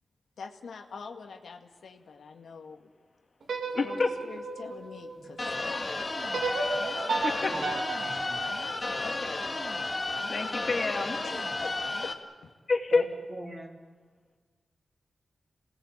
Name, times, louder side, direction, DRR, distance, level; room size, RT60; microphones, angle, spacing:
voice 1, 0.4-2.9 3.7-5.9 7.3-7.5 9.0-9.4 11.2-12.2 12.4-12.5, left 5 dB, 85° left, 5 dB, 2.0 m, -44 dB
sound 1, 3.4-5.6 6.3-9.5, right 3 dB, 85° right, 3.1 m, -34 dB
voice 2, 3.7-4.1 7.2-7.5 10.3-11.2 12.7-13.0, left 3 dB, 45° left, 3 dB, 2.8 m, -27 dB
voice 3, 5.2-5.7 7.4-7.6 8.0-8.4 12.9-13.8, right 1 dB, 30° right, 2 dB, 3.3 m, -43 dB
sound 2, 5.4-12.1, left 2 dB, 30° left, 2.0 m, -33 dB
28.0 x 19.5 x 8.6 m, 1.5 s
wide cardioid pair, 130°, 0 cm